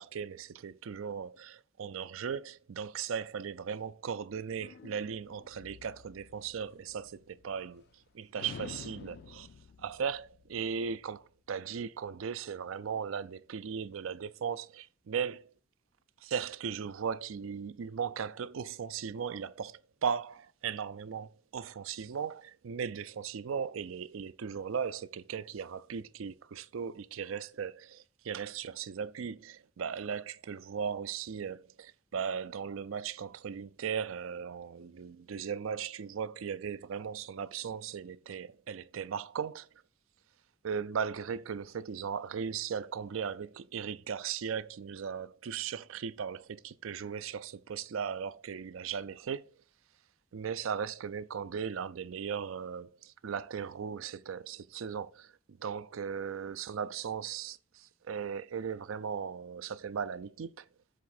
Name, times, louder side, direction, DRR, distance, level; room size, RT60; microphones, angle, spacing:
voice 1, 0.0-7.8 8.1-9.5 9.8-15.5 16.2-39.7 40.6-49.5 50.3-55.3 55.6-60.7, right 7 dB, 70° right, 0.4 m, -37 dB
sound 1, 4.6-8.0 8.3-11.0, left 6 dB, 50° left, 0.3 m, -50 dB
7.5 x 3.5 x 5.7 m
head